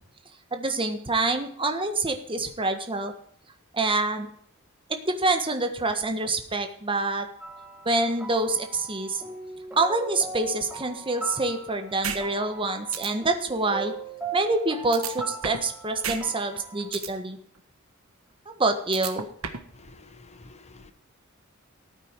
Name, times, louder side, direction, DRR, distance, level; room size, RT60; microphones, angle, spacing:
voice 1, 0.5-3.1 3.7-4.3 5.0-7.3 7.8-9.2 9.8-13.9 14.3-17.4 18.5-19.3, right 2 dB, 25° right, 6 dB, 1.5 m, -26 dB
sound 1, 7.4-16.9, right 4 dB, 5° right, 2.6 m, -39 dB
sound 2, 12.0-12.2 12.6-12.7 12.9-13.1 14.9-15.7 16.0-16.2 16.5-17.1 18.9-19.7, right 7 dB, 75° right, 1.5 m, -31 dB
voice 2, 19.7-20.9, left 2 dB, 30° left, 10 dB, 1.0 m, -50 dB
14.0 x 8.9 x 4.7 m, 0.63 s
head